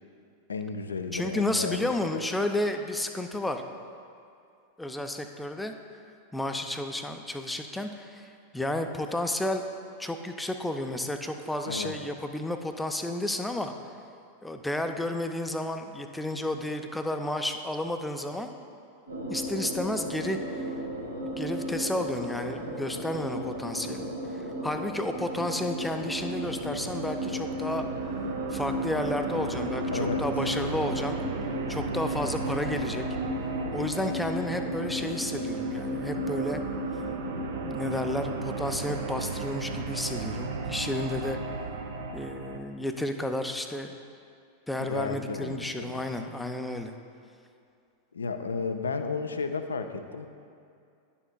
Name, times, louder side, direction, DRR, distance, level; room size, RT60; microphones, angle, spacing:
voice 1, 0.5-2.2 11.7-11.9 29.9-30.2 44.8-46.0 48.1-50.3, left 4 dB, 70° left, 8 dB, 0.4 m, -33 dB
voice 2, 1.1-3.6 4.8-5.7 6.3-9.6 10.0-13.7 14.4-18.5 19.3-20.6 21.2-27.9 28.5-31.2 31.7-33.0 33.7-36.6 37.6-41.4 42.1-43.9 44.7-46.9, left 1 dB, 5° left, 6 dB, 0.4 m, -32 dB
sound 1, 19.1-39.0, equal, 85° right, 1.1 m, -35 dB
sound 2, 25.6-42.6, right 3 dB, 55° right, 0.5 m, -35 dB
10.5 x 6.9 x 2.2 m, 2.4 s
figure-of-eight pair, 90°, 0 cm